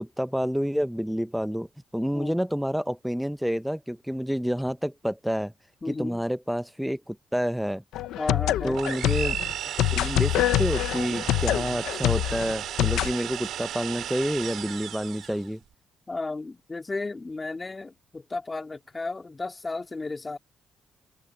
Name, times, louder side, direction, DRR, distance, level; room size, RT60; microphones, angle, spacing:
voice 1, 0.0-1.7 1.9-5.5 5.9-7.8 8.6-9.4 9.8-15.6, equal, ahead, 0.9 m, -29 dB
voice 2, 5.8-6.2 8.2-8.8 16.1-20.4, left 3 dB, 25° left, 2.6 m, -34 dB
sound 1, 7.9-13.1, left 14 dB, 85° left, 1.0 m, -25 dB
sound 2, 8.7-15.5, right 11 dB, 75° right, 3.2 m, -34 dB
cardioid pair, 90°, 0 cm